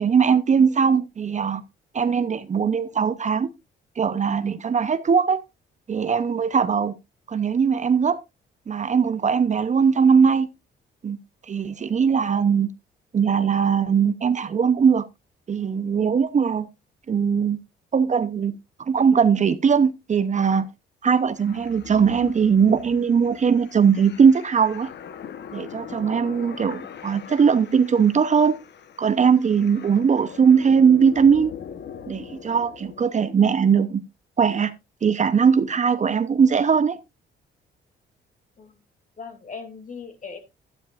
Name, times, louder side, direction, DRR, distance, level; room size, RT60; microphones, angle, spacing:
voice 1, 0.0-1.6 1.9-3.5 4.0-5.4 5.9-6.9 7.3-8.2 8.7-10.5 11.0-11.2 11.5-12.7 13.1-15.0 15.5-16.7 17.1-17.6 17.9-18.6 18.9-20.7 21.0-24.9 25.5-28.5 29.0-31.5 32.1-34.0 34.4-34.7 35.0-37.0, right 6 dB, 35° right, 0.8 m, -20 dB
sound 1, 21.4-33.1, left 8 dB, 60° left, 1.1 m, -41 dB
voice 2, 39.2-40.4, left 5 dB, 40° left, 2.7 m, -38 dB
12.5 x 10.0 x 2.5 m
cardioid pair, 90°, 20 cm